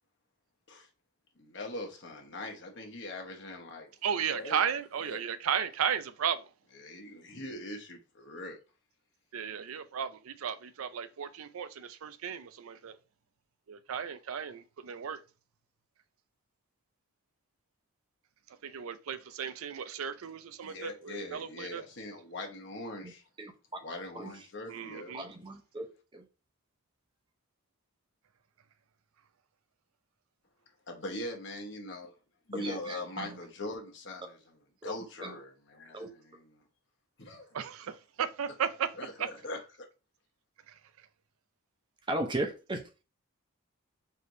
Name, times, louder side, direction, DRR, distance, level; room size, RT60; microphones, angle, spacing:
voice 1, 1.4-3.9 4.3-4.7 5.0-5.2 6.7-8.6 20.6-23.2 23.8-25.2 30.9-32.1 32.5-36.6 37.2-37.5 38.9-39.9, left 1 dB, 55° left, 1.0 m, -42 dB
voice 2, 4.0-6.4 9.3-13.0 13.7-15.2 18.6-21.8 24.7-25.3 37.5-38.9 39.2-39.3 40.7-40.8, right 8 dB, 80° right, 0.4 m, -34 dB
voice 3, 25.1-25.9 26.1-26.2 32.5-33.3 35.2-35.3 35.9-36.1 42.1-43.0, right 1 dB, 20° right, 0.6 m, -36 dB
4.5 x 3.3 x 2.6 m
head